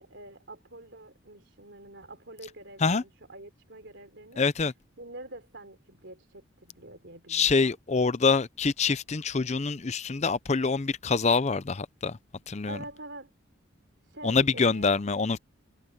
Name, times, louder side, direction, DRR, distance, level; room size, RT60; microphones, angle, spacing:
voice 1, 0.0-4.4 5.0-7.8 12.7-13.3 14.1-15.0, right 1 dB, 65° right, 3.4 m, -46 dB
voice 2, 4.4-4.7 7.3-12.2 12.5-12.8 14.2-15.4, left 4 dB, 35° left, 0.6 m, -25 dB
head